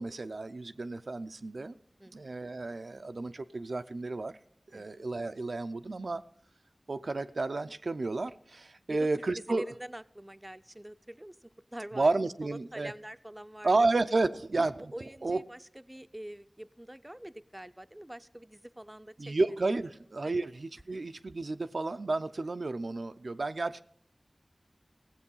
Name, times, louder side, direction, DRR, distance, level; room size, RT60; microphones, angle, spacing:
voice 1, 0.0-1.7 2.1-4.3 4.7-6.2 6.9-9.7 12.0-12.9 13.6-14.9 15.2-15.4 19.2-23.8, right 3 dB, 80° right, 9 dB, 0.4 m, -31 dB
voice 2, 2.0-2.5 4.7-5.0 8.9-9.1 9.4-12.1 12.4-13.7 14.8-19.3 20.2-20.4 20.9-21.0, right 1 dB, 15° right, 12 dB, 0.4 m, -45 dB
16.5 x 7.7 x 5.5 m, 0.64 s
wide cardioid pair, 55°, 0 cm